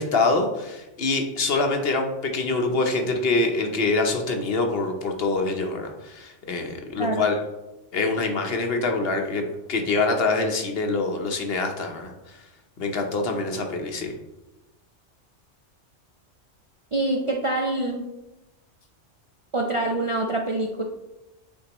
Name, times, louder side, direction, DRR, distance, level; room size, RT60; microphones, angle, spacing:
voice 1, 0.0-7.4 7.9-9.4 9.7-12.4 12.8-14.1, left 3 dB, 55° left, 3 dB, 1.0 m, -25 dB
voice 2, 16.9-18.1 19.5-20.8, right 2 dB, 40° right, 0 dB, 0.4 m, -25 dB
8.9 x 4.4 x 3.0 m, 1.0 s
omnidirectional pair, 1.2 m